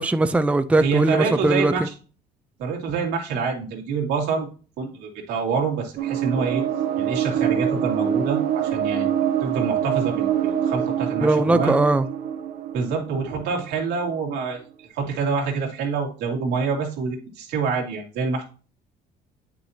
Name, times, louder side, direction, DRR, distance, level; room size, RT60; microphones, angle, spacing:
voice 1, 0.0-1.7 11.2-12.1, right 2 dB, 5° right, 0.4 m, -20 dB
voice 2, 0.8-1.9 2.6-4.5 4.8-6.6 7.0-9.1 9.4-11.8 12.7-18.4, right 5 dB, 90° right, 2.3 m, -26 dB
sound 1, 6.0-14.1, right 9 dB, 70° right, 1.0 m, -25 dB
8.8 x 6.1 x 2.8 m
cardioid pair, 110°, 17 cm